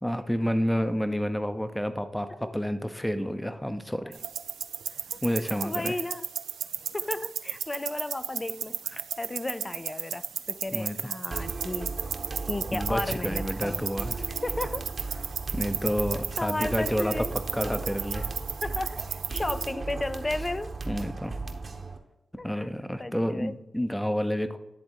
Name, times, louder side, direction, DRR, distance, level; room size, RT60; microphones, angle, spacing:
voice 1, 0.0-4.1 5.2-6.0 10.7-11.1 12.7-14.1 15.5-18.3 20.9-21.4 22.4-24.6, equal, 5° left, 0.8 m, -29 dB
sound 1, 4.1-19.7, right 8 dB, 85° right, 0.4 m, -35 dB
voice 2, 5.6-6.3 6.9-11.9 12.5-13.8 14.4-14.9 16.4-17.3 18.6-20.7 22.4-22.7 23.0-23.6, left 2 dB, 25° left, 0.4 m, -34 dB
sound 2, 11.3-22.0, right 3 dB, 50° right, 1.1 m, -36 dB
11.0 x 3.6 x 4.5 m
cardioid pair, 50°, 0 cm